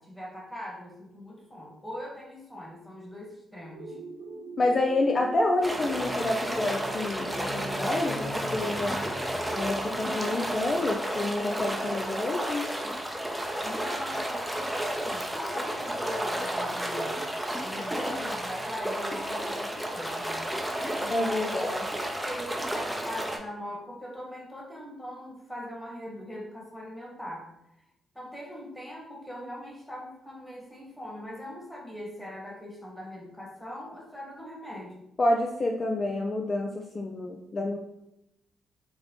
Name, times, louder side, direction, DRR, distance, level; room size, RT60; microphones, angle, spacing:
voice 1, 0.0-4.0 13.6-17.2 17.5-20.5 20.7-21.8 22.2-27.5 28.1-35.0, left 1 dB, 10° left, -2 dB, 1.3 m, -41 dB
sound 1, 3.7-9.7, right 3 dB, 85° right, 0.4 m, -44 dB
voice 2, 4.6-9.0 9.5-12.7 21.1-21.8 35.2-37.8, left 2 dB, 40° left, 2 dB, 0.3 m, -28 dB
sound 2, 5.6-23.4, right 1 dB, 10° right, 0.5 m, -32 dB
4.0 x 2.0 x 2.9 m, 0.85 s
hypercardioid pair, 45°, 0 cm